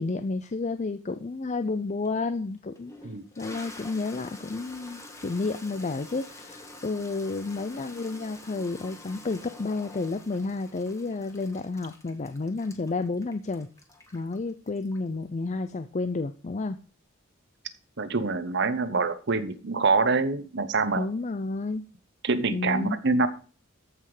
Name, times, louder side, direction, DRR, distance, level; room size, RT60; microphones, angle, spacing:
voice 1, 0.0-2.9 3.4-13.7 14.1-16.8 21.0-21.9 22.5-23.0, left 3 dB, 35° left, 10 dB, 0.5 m, -31 dB
Toilet flush, 2.0-2.1 2.8-15.2, left 2 dB, 15° left, 1.6 m, -47 dB
voice 2, 18.0-21.1 22.2-23.3, right 4 dB, 60° right, 12 dB, 1.0 m, -25 dB
14.0 x 5.6 x 4.9 m, 0.39 s
head